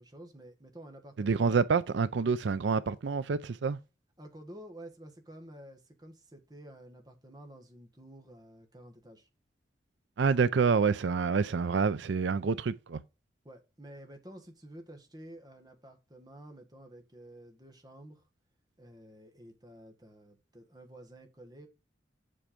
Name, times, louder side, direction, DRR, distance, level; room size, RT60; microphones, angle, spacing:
voice 1, 0.0-1.6 4.2-9.3 13.4-18.2 18.8-21.7, right 1 dB, 20° right, 1.5 m, -51 dB
voice 2, 1.2-3.8 10.2-13.0, right 5 dB, 70° right, 0.4 m, -27 dB
7.6 x 4.6 x 5.1 m
head